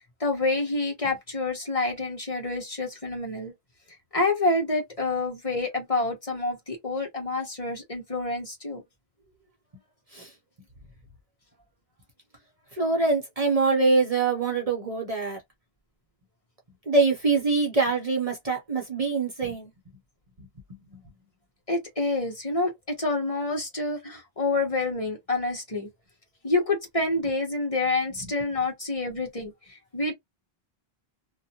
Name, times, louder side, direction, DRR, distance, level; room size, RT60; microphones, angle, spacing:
voice 1, 0.2-3.5 4.1-8.8 21.7-25.9 26.4-29.5 29.9-30.1, left 2 dB, 35° left, 1.1 m, -27 dB
voice 2, 12.7-15.4 16.9-19.7 20.4-21.0 28.2-28.3, right 3 dB, 40° right, 0.9 m, -24 dB
2.7 x 2.2 x 2.8 m
omnidirectional pair, 1.0 m